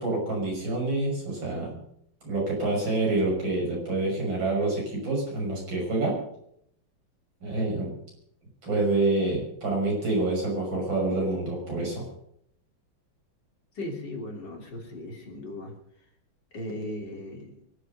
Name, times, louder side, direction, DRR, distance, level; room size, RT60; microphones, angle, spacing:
voice 1, 0.0-1.8 2.2-6.1 7.4-7.9 8.6-12.0, right 2 dB, 80° right, -2 dB, 7.0 m, -27 dB
voice 2, 13.8-15.7 16.5-17.6, left 1 dB, 65° left, 2 dB, 3.5 m, -37 dB
24.0 x 8.1 x 6.8 m, 0.72 s
omnidirectional pair, 2.1 m